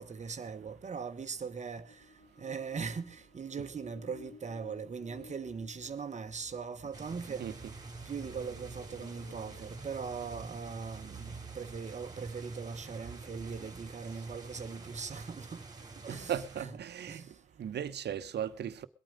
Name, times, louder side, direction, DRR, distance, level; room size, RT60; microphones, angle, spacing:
voice 1, 0.0-1.9 2.4-7.4 8.1-15.6 16.0-16.8 17.1-17.3, right 5 dB, 35° right, 1.2 m, -40 dB
sound 1, 1.7-11.1, left 5 dB, 60° left, 4.7 m, -57 dB
sound 2, 6.9-16.6, right 3 dB, 20° right, 2.5 m, -48 dB
voice 2, 16.1-18.9, right 9 dB, 55° right, 1.0 m, -37 dB
22.5 x 8.9 x 5.1 m
cardioid pair, 90°, 20 cm